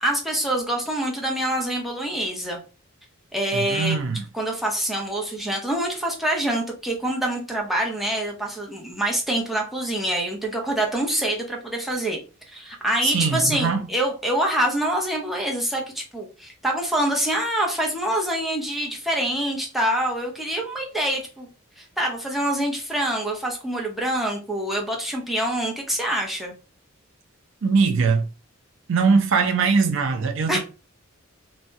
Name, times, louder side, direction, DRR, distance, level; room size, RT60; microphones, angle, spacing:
voice 1, 0.0-2.6 3.3-4.0 4.3-12.2 12.5-21.5 21.8-26.5 30.5-30.6, right 1 dB, ahead, 0.6 m, -25 dB
voice 2, 3.5-4.2 13.0-13.8 27.6-28.3 28.9-30.6, right 5 dB, 60° right, 0.4 m, -21 dB
2.7 x 2.0 x 3.4 m
head